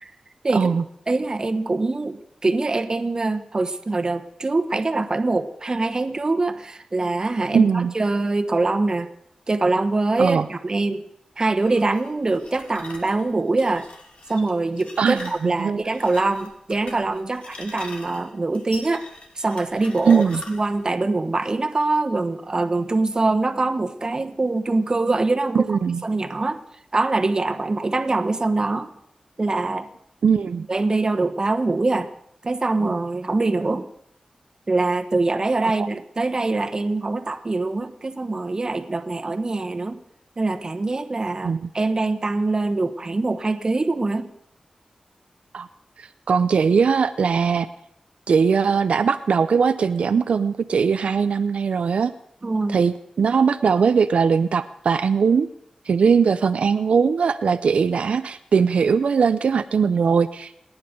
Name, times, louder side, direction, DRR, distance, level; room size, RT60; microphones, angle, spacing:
voice 1, 0.5-0.8 7.5-7.9 10.2-10.5 15.0-15.8 20.1-20.4 25.5-26.0 30.2-30.7 35.6-35.9 41.4-41.7 45.5-45.7 46.0-47.7 48.3-52.1 52.7-55.5 55.9-60.5, right 6 dB, 90° right, 10 dB, 0.5 m, -20 dB
voice 2, 1.1-9.1 9.5-11.0 11.4-13.9 14.3-19.0 19.3-25.7 26.0-26.6 26.9-28.9 29.4-29.9 30.7-32.1 32.4-33.9 34.7-40.0 40.4-44.3 52.4-52.8, right 3 dB, 40° right, 9 dB, 1.2 m, -23 dB
sound 1, 11.5-20.8, left 2 dB, 70° left, 2.9 m, -43 dB
28.5 x 9.7 x 5.3 m, 0.71 s
wide cardioid pair, 90°, 2 cm